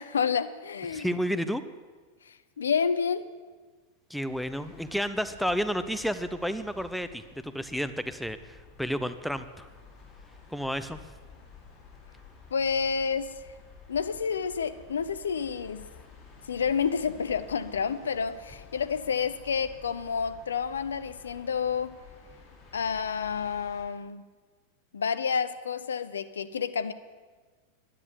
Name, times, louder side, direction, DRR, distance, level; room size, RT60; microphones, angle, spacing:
voice 1, 0.0-1.1 2.3-3.3 12.5-13.3 13.9-15.9 16.5-22.0 22.7-24.2 24.9-26.9, left 6 dB, 70° left, 13 dB, 0.6 m, -29 dB
voice 2, 0.9-1.6 4.1-9.7 10.5-11.0, equal, ahead, 10 dB, 0.6 m, -31 dB
sound 1, 4.3-23.9, left 5 dB, 35° left, 4.2 m, -52 dB
10.5 x 10.0 x 8.6 m, 1.4 s
figure-of-eight pair, 90°, 0 cm